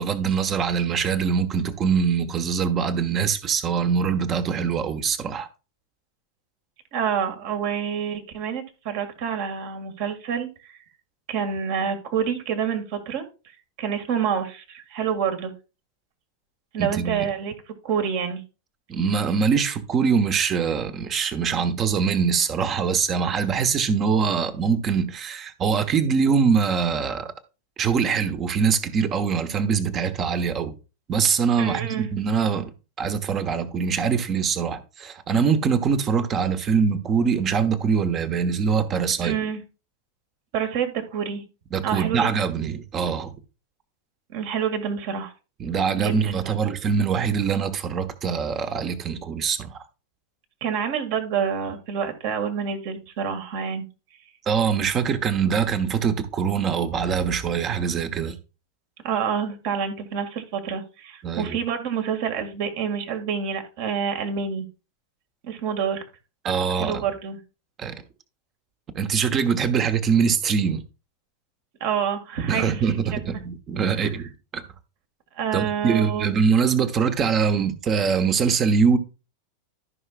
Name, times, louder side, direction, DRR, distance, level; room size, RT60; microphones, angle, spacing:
voice 1, 0.0-5.5 16.8-17.2 18.9-27.3 27.8-30.7 31.1-32.7 33.0-39.3 41.7-43.4 45.6-49.8 54.5-58.4 61.2-61.6 66.4-67.0 67.8-67.9 68.9-70.8 72.5-74.6 75.5-79.0, right 6 dB, 30° right, 1.2 m, -23 dB
voice 2, 6.9-10.8 11.3-13.3 13.8-15.5 16.7-17.5 17.8-18.4 31.6-32.1 39.2-39.6 40.5-41.4 41.8-42.3 44.3-45.3 46.0-46.4 50.6-53.9 59.0-64.7 65.4-66.0 66.7-67.4 71.8-73.2 74.0-74.1 75.4-76.3, right 7 dB, 50° right, 2.0 m, -27 dB
14.5 x 5.8 x 2.4 m
figure-of-eight pair, 90°, 0 cm